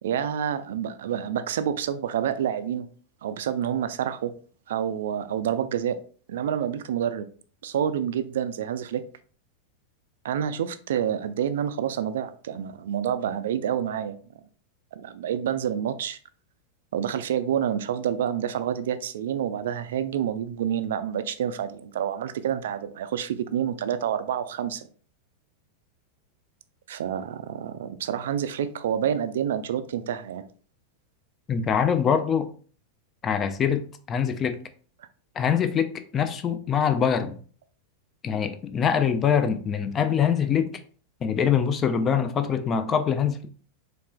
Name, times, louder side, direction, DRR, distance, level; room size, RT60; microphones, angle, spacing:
voice 1, 0.0-2.9 3.2-4.3 4.7-6.0 6.3-7.3 7.6-9.0 10.2-14.2 14.9-16.2 16.9-24.8 26.9-30.4, right 9 dB, 60° right, 0.3 m, -28 dB
voice 2, 31.5-32.5 33.2-34.6 35.4-37.4 38.2-40.7 41.2-43.5, left 7 dB, 25° left, 0.4 m, -24 dB
4.2 x 3.2 x 2.2 m
figure-of-eight pair, 90°, 0 cm